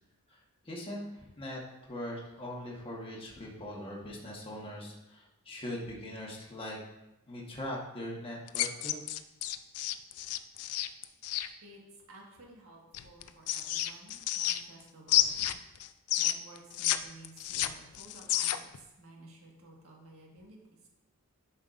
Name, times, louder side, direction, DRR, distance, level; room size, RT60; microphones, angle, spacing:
voice 1, 0.3-6.8 7.3-9.0, left 1 dB, 25° left, -3 dB, 1.2 m, -41 dB
sound 1, 8.5-11.5 12.9-14.8 15.1-17.0 17.2-18.8, left 13 dB, 75° left, 0.4 m, -30 dB
voice 2, 11.6-15.5 16.2-20.9, right 2 dB, 65° right, -1 dB, 1.6 m, -54 dB
10.5 x 5.4 x 2.5 m, 0.95 s
head